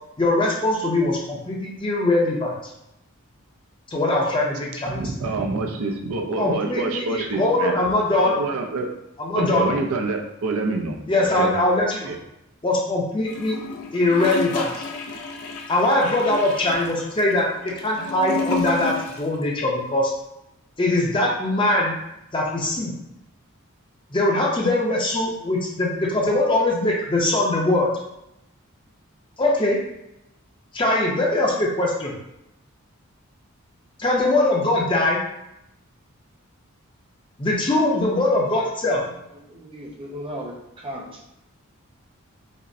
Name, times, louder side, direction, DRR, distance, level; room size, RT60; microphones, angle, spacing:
voice 1, 0.2-2.5 3.9-5.0 6.4-8.4 9.2-9.7 11.1-12.1 12.6-13.6 13.9-14.7 15.7-17.5 17.8-20.1 20.8-22.0 22.3-22.9 24.1-27.9 29.4-29.8 30.7-32.1 34.0-35.2 37.4-39.0, left 2 dB, 20° left, -2 dB, 0.5 m, -21 dB
voice 2, 4.9-7.8 8.2-8.9 9.4-11.5 12.0-12.2, right 3 dB, 75° right, 3 dB, 0.5 m, -27 dB
Gurgling / Toilet flush, 13.3-19.4 19.6-19.7, left 4 dB, 85° left, 0.5 m, -31 dB
voice 3, 39.5-41.2, equal, 25° right, -2 dB, 0.6 m, -36 dB
5.1 x 2.0 x 2.6 m, 0.84 s
head